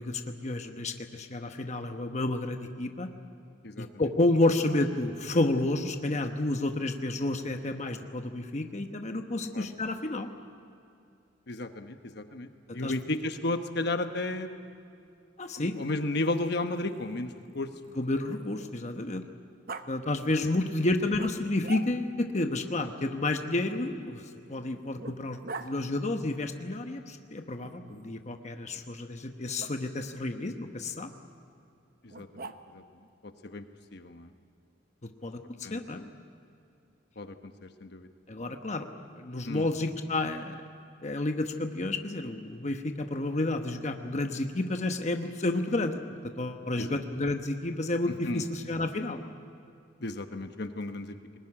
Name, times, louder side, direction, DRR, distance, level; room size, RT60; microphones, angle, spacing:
voice 1, 0.0-3.1 3.8-10.3 12.8-12.9 15.4-15.8 17.9-19.2 19.9-24.2 24.5-31.1 35.0-35.4 35.7-36.0 38.3-38.9 39.2-40.6 41.0-46.0 46.4-49.2, left 2 dB, 40° left, 6 dB, 1.1 m, -30 dB
voice 2, 11.5-14.5 15.6-18.0 32.0-32.8 33.2-33.6 33.9-34.3 35.6-36.1 37.2-38.1 39.4-39.7 46.8-47.0 48.3-48.4 50.0-51.2, left 2 dB, 60° left, 8 dB, 1.1 m, -34 dB
Growling, 15.6-19.0 19.7-19.9 21.1-22.2 23.6-25.7 27.6-28.3 29.6-29.7 32.1-32.9, right 3 dB, 55° right, 0.9 m, -45 dB
21.0 x 20.0 x 9.9 m, 2.5 s
head